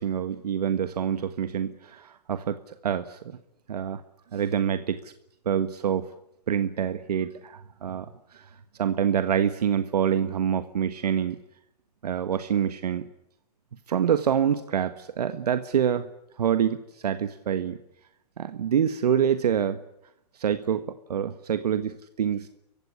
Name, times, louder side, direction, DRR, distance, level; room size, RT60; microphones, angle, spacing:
voice 1, 0.0-3.2 3.7-4.0 4.3-5.1 5.4-6.1 6.5-8.5 8.8-11.4 12.0-13.1 13.9-16.1 16.4-17.8 18.4-19.8 20.4-20.8 21.1-22.5, right 8 dB, 75° right, 11 dB, 1.4 m, -26 dB
28.5 x 16.0 x 9.7 m, 0.81 s
hypercardioid pair, 130°, 20 cm